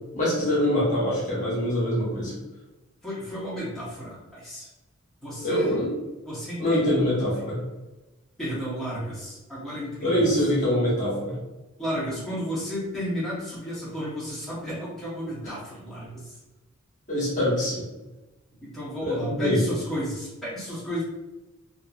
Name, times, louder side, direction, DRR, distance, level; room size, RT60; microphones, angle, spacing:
voice 1, 0.1-2.3 5.4-5.9 6.6-7.6 10.0-11.4 15.4-15.5 17.1-17.8 19.0-19.6, left 1 dB, 35° left, -7 dB, 1.1 m, -24 dB
voice 2, 3.0-4.7 5.2-5.7 6.2-7.4 8.4-10.4 11.8-16.3 18.6-21.0, equal, ahead, -11 dB, 1.0 m, -33 dB
2.7 x 2.5 x 2.4 m, 1.1 s
head